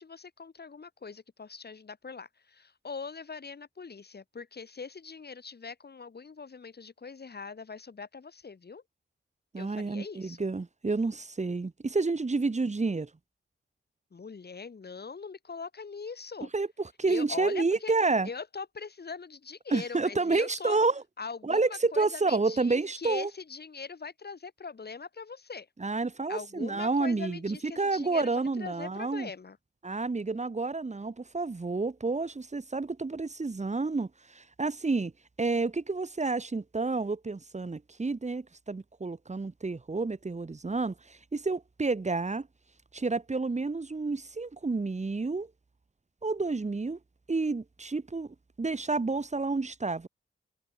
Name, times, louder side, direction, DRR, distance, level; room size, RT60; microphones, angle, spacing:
voice 1, 0.0-8.8 9.6-10.4 14.1-16.5 17.1-17.9 18.2-20.8 21.2-25.7 26.3-29.6, left 5 dB, 50° left, 4.3 m, -41 dB
voice 2, 9.5-13.1 16.5-18.3 19.7-21.0 21.4-23.3 25.8-29.3 29.8-35.1 35.4-42.5 42.9-45.5 46.2-47.0 47.3-50.1, right 3 dB, 35° right, 3.3 m, -30 dB
cardioid pair, 85°, 21 cm